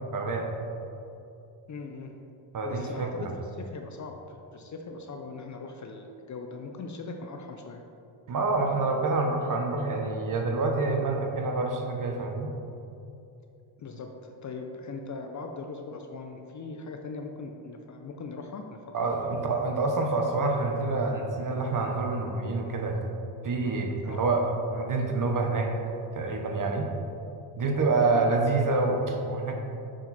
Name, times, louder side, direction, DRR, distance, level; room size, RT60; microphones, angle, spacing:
voice 1, 0.1-0.5 2.5-3.3 8.3-12.5 18.9-23.0 23.4-25.7 26.1-26.9 27.6-29.5, right 3 dB, 40° right, 2 dB, 0.9 m, -27 dB
voice 2, 1.7-2.2 2.6-7.8 13.8-19.2 24.0-24.4 28.1-28.3, left 3 dB, 35° left, 4 dB, 0.5 m, -40 dB
6.2 x 4.5 x 4.1 m, 2.8 s
cardioid pair, 90°, 50 cm